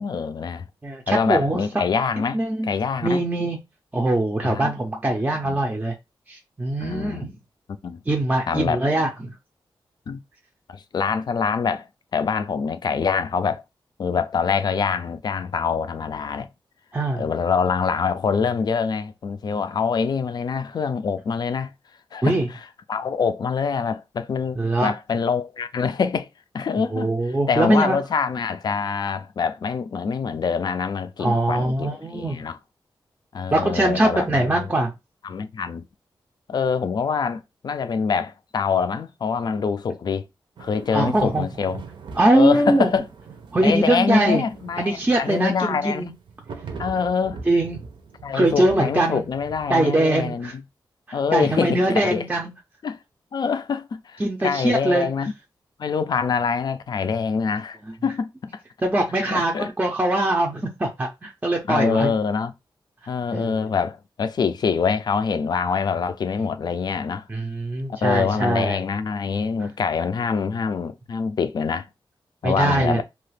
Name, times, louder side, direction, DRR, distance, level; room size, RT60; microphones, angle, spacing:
voice 1, 0.0-0.6 1.1-3.2 4.4-4.7 5.4-5.6 6.8-7.3 7.8-8.0 8.5-8.8 10.1-10.2 10.7-11.9 12.1-13.6 14.0-16.5 17.2-21.7 22.1-22.4 22.9-26.3 26.5-27.1 27.5-32.6 33.3-34.7 35.2-35.9 36.5-40.3 40.6-41.8 42.3-43.0 43.6-46.1 46.8-47.5 48.2-50.6 51.1-52.3 52.8-53.0 53.3-55.3 55.8-58.6 59.3-59.7 61.7-62.5 63.1-67.3 68.0-71.9 72.4-73.0, left 5 dB, 55° left, 0.3 m, -25 dB
voice 2, 0.8-1.6 2.3-2.7 3.0-3.6 3.9-5.9 6.3-7.4 8.1-9.3 16.9-17.2 22.2-22.5 24.6-24.9 26.9-28.0 31.2-32.4 33.5-34.9 40.9-41.5 42.2-42.9 43.5-44.4 44.8-46.1 47.5-47.8 48.3-49.2 49.7-50.5 51.1-52.5 54.2-55.1 58.8-62.1 63.3-63.5 67.3-68.8 72.4-73.0, right 1 dB, 15° right, 0.4 m, -22 dB
sound 1, 40.6-49.7, right 5 dB, 70° right, 0.6 m, -42 dB
2.8 x 2.3 x 3.2 m
wide cardioid pair, 165°, 9 cm